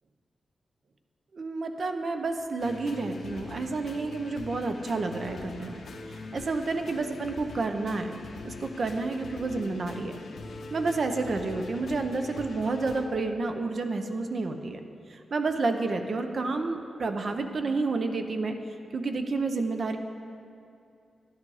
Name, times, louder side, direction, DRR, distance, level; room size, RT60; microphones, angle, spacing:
voice 1, 1.3-5.8 6.1-8.2 8.4-10.2 10.7-14.8 15.1-18.6 18.9-20.0, right 3 dB, 45° right, 6 dB, 0.7 m, -30 dB
sound 1, 2.6-13.1, left 3 dB, 65° left, 0.9 m, -42 dB
11.0 x 10.0 x 4.8 m, 2.5 s
wide cardioid pair, 160°, 0 cm